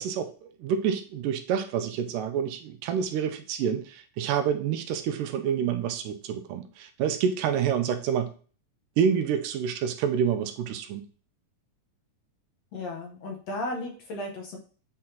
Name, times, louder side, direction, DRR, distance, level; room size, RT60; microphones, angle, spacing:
voice 1, 0.0-8.3 9.0-11.0, right 8 dB, 80° right, 7 dB, 2.2 m, -28 dB
voice 2, 12.7-14.6, left 1 dB, 65° left, 1 dB, 2.0 m, -35 dB
8.6 x 4.0 x 2.9 m, 0.40 s
omnidirectional pair, 3.9 m